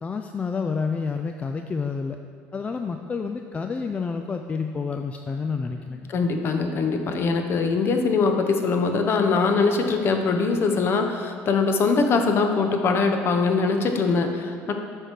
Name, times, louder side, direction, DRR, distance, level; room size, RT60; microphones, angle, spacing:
voice 1, 0.0-2.2 2.5-6.1, left 5 dB, 25° left, 5 dB, 0.3 m, -29 dB
voice 2, 6.1-14.7, left 4 dB, 45° left, 5 dB, 0.8 m, -22 dB
7.4 x 5.1 x 4.5 m, 2.1 s
cardioid pair, 105°, 6 cm